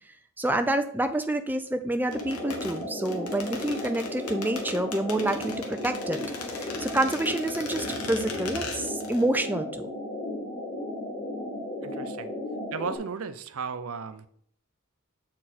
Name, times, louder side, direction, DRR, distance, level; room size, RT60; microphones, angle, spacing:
voice 1, 0.4-6.2 6.6-9.9, right 1 dB, 10° right, 8 dB, 0.4 m, -28 dB
sound 1, 2.1-9.3 9.5-9.6, left 4 dB, 85° left, 1.2 m, -39 dB
sound 2, 2.1-13.0, left 1 dB, 35° left, 1.7 m, -35 dB
voice 2, 11.8-12.3 12.7-14.3, right 5 dB, 70° right, 12 dB, 0.5 m, -35 dB
7.4 x 4.5 x 4.1 m, 0.62 s
head